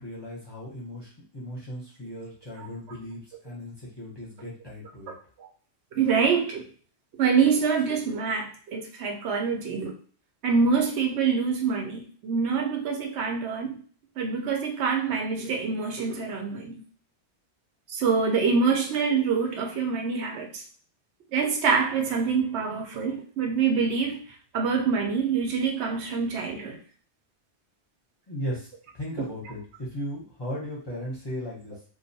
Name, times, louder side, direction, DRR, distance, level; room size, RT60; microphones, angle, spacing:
voice 1, 0.0-5.1 28.3-31.8, equal, 25° left, -5 dB, 0.7 m, -37 dB
voice 2, 5.9-6.6 7.2-9.9 10.4-13.8 14.2-16.8 17.9-20.6 21.3-24.2 24.5-26.8, right 5 dB, 85° right, 2 dB, 0.9 m, -25 dB
2.3 x 2.1 x 2.6 m, 0.43 s
omnidirectional pair, 1.1 m